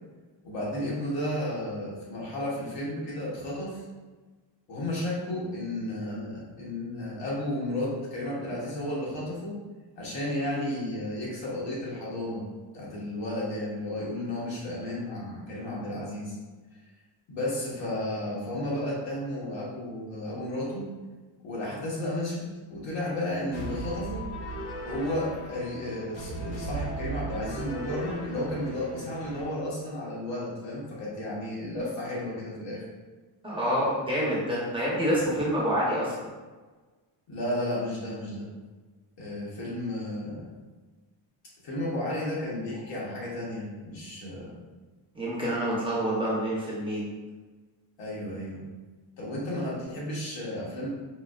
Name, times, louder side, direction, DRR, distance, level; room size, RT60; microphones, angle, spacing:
voice 1, 0.4-3.8 4.7-9.6 9.9-12.4 12.7-16.4 17.3-20.9 21.4-24.3 24.8-32.8 37.3-38.5 39.2-40.5 41.6-44.5 48.0-48.6 49.2-50.9, left 1 dB, 70° left, -5 dB, 1.3 m, -33 dB
sound 1, 23.5-29.5, right 2 dB, 35° left, 0.6 m, -37 dB
voice 2, 33.4-36.3 45.1-47.1, equal, 10° right, -7 dB, 0.7 m, -27 dB
4.5 x 2.5 x 2.3 m, 1.3 s
cardioid pair, 165°, 45 cm